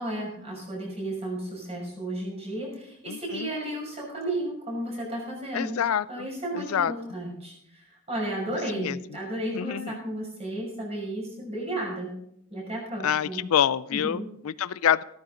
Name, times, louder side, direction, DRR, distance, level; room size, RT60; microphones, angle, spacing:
voice 1, 0.0-5.7 6.1-12.1 12.5-13.4 13.9-14.3, right 1 dB, 30° right, -2 dB, 6.0 m, -33 dB
voice 2, 3.1-3.5 5.5-6.3 6.5-6.9 8.7-9.0 9.5-10.0 13.0-15.0, left 9 dB, 75° left, 18 dB, 0.4 m, -26 dB
15.0 x 13.5 x 3.9 m, 0.75 s
head